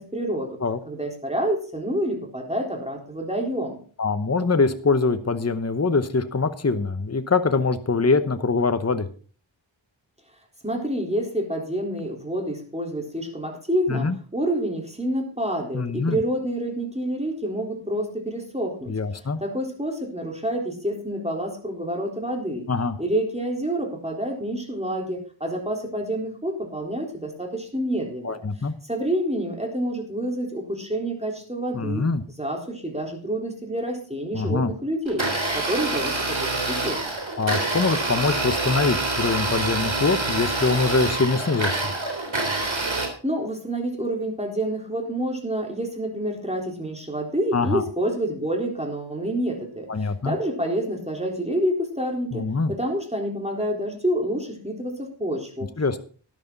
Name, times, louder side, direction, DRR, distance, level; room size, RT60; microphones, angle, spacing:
voice 1, 0.0-0.6 0.9-3.8 10.6-19.0 19.4-22.7 23.0-28.4 28.8-32.0 32.4-35.2 35.5-37.0 43.2-49.9 50.3-55.7, right 1 dB, 15° right, 1 dB, 3.9 m, -28 dB
voice 2, 4.0-9.1 13.9-14.2 15.7-16.2 18.9-19.4 22.7-23.0 28.2-28.8 31.7-32.2 34.3-34.7 37.4-41.8 47.5-47.8 49.9-50.4 52.3-52.7 55.8-56.0, left 4 dB, 35° left, 10 dB, 1.0 m, -23 dB
Domestic sounds home sounds, 35.1-43.1, right 2 dB, 75° right, 3.6 m, -26 dB
12.5 x 11.0 x 4.0 m, 0.41 s
wide cardioid pair, 50°, 46 cm